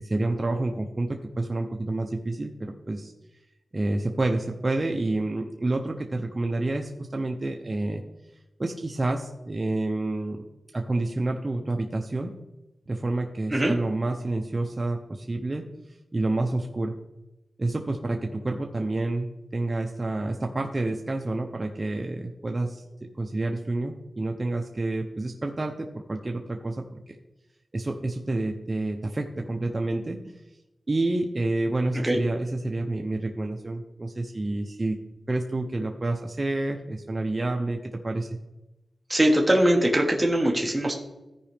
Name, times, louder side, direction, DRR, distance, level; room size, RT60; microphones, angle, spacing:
voice 1, 0.0-3.1 3.7-8.0 8.6-10.4 10.7-12.3 12.9-15.7 16.1-16.9 17.6-22.8 23.2-27.2 27.7-30.2 30.9-35.0 35.3-37.8 38.0-38.4, right 2 dB, 30° right, 2 dB, 0.7 m, -29 dB
voice 2, 39.1-40.9, right 1 dB, 15° right, 0 dB, 1.3 m, -21 dB
14.5 x 4.9 x 3.5 m, 1.0 s
wide cardioid pair, 85°, 0 cm